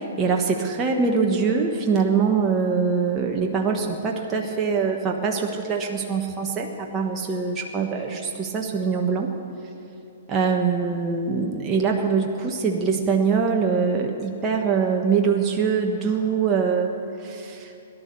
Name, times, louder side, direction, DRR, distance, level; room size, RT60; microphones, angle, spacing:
voice 1, 0.0-9.3 10.3-16.9 17.2-17.7, right 5 dB, 25° right, 0 dB, 1.4 m, -23 dB
17.5 x 11.5 x 6.9 m, 2.9 s
figure-of-eight pair, 115°, 0 cm